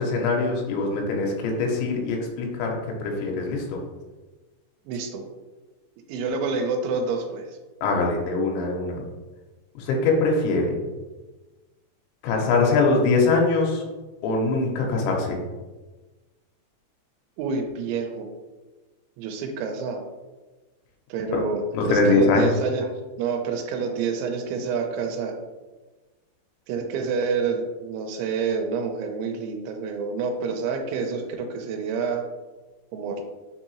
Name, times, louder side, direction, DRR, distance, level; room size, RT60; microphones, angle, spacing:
voice 1, 0.0-2.7 3.0-3.8 7.8-9.0 9.8-10.8 12.2-13.8 14.2-15.4 21.3-21.4 21.7-22.5, left 3 dB, 90° left, 0 dB, 3.0 m, -22 dB
voice 2, 4.9-5.2 6.1-7.4 17.4-18.3 19.2-20.0 21.1-22.9 23.2-25.3 26.7-32.2 32.9-33.2, right 5 dB, 85° right, 4 dB, 2.9 m, -28 dB
6.6 x 2.7 x 2.9 m, 1.2 s
omnidirectional pair, 5.2 m